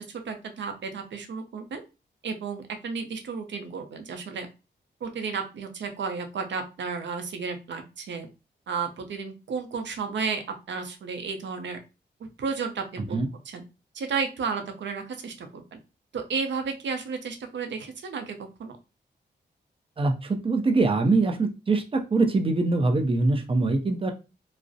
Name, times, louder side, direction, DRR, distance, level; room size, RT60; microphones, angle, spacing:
voice 1, 0.0-1.8 2.2-4.5 5.0-8.3 8.7-11.8 12.2-13.2 13.5-13.6 13.9-15.8 16.1-18.8, right 5 dB, 85° right, 6 dB, 0.5 m, -33 dB
voice 2, 20.0-24.1, right 3 dB, 30° right, 4 dB, 0.4 m, -23 dB
2.4 x 2.0 x 2.5 m, 0.29 s
wide cardioid pair, 85°, 18 cm